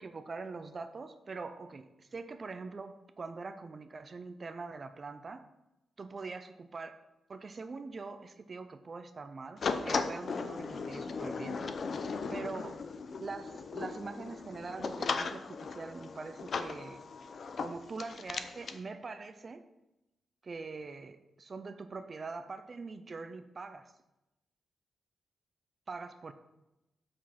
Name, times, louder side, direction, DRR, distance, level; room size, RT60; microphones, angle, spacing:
voice 1, 0.0-5.5 6.0-7.0 7.3-11.6 12.3-12.9 13.2-17.0 17.6-19.7 20.4-23.9 25.9-26.3, right 4 dB, 35° right, 10 dB, 0.5 m, -43 dB
sound 1, 9.6-18.8, left 4 dB, 50° left, 0.6 m, -37 dB
7.2 x 6.2 x 5.8 m, 0.94 s
wide cardioid pair, 130°, 0 cm